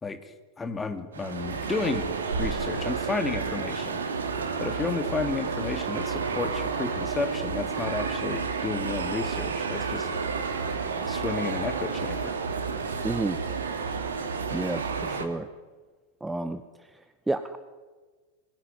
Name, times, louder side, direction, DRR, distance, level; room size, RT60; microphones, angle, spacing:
voice 1, 0.6-4.0 4.6-10.1 11.0-12.4, left 4 dB, 15° left, 7 dB, 2.8 m, -32 dB
sound 1, 1.1-15.3, right 5 dB, 70° right, 3.3 m, -31 dB
voice 2, 13.0-13.4 14.5-15.5 16.2-16.6 16.9-17.6, right 2 dB, 5° right, 11 dB, 1.2 m, -31 dB
26.5 x 21.0 x 9.9 m, 1.4 s
figure-of-eight pair, 90°, 0 cm